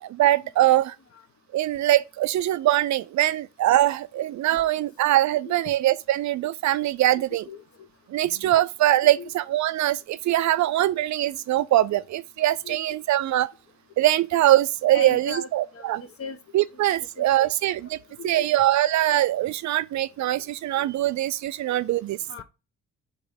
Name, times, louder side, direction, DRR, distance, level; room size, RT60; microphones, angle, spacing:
voice 1, 0.0-0.9 1.5-7.4 8.1-13.5 14.0-16.0 16.5-18.0 18.2-22.2, right 14 dB, 55° right, 0.5 m, -22 dB
voice 2, 7.1-7.9 9.0-9.3 12.6-12.8 14.9-16.4 16.7-16.8 17.2-17.5 18.2-18.5 20.4-20.5 22.3-22.4, left 5 dB, 40° left, 1.1 m, -39 dB
4.9 x 4.4 x 4.9 m
hypercardioid pair, 50°, 35 cm